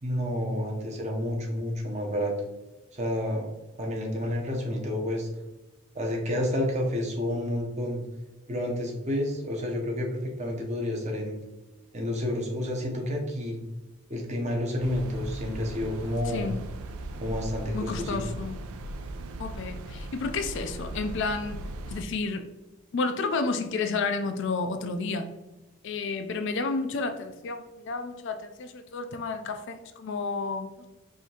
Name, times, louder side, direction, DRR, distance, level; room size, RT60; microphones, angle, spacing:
voice 1, 0.0-2.3 2.9-3.5 3.8-5.3 5.9-8.0 8.5-11.4 11.9-13.6 14.1-16.5 17.2-18.3, left 1 dB, 30° right, 0 dB, 0.7 m, -30 dB
sound 1, 14.8-22.0, right 1 dB, 75° right, 0.4 m, -38 dB
voice 2, 16.3-16.6 17.7-18.6 19.4-21.6 21.9-22.5 22.9-25.3 25.8-30.9, left 4 dB, 55° left, 7 dB, 0.3 m, -31 dB
4.9 x 2.7 x 2.8 m, 1.1 s
head